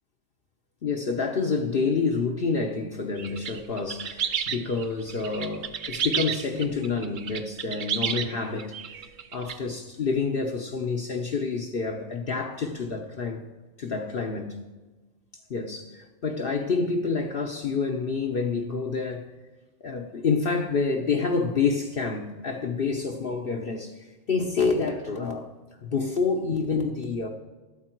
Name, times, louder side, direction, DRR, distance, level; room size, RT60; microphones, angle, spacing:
voice 1, 0.8-8.7 9.3-13.4 13.8-14.6 15.5-19.3 19.8-25.5 25.8-27.3, left 4 dB, 50° left, 0.9 m, -28 dB
sound 1, 3.2-9.6, right 8 dB, 55° right, 0.6 m, -31 dB
12.5 x 8.5 x 4.5 m
omnidirectional pair, 1.3 m